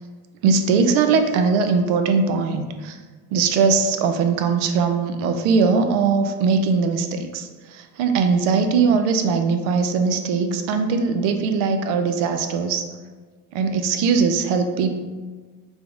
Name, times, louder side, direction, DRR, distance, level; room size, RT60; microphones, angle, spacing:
voice 1, 0.4-3.0 3.3-12.8 13.5-15.0, right 5 dB, 85° right, 7 dB, 0.6 m, -20 dB
4.1 x 3.5 x 3.4 m, 1.4 s
cardioid pair, 125°, 41 cm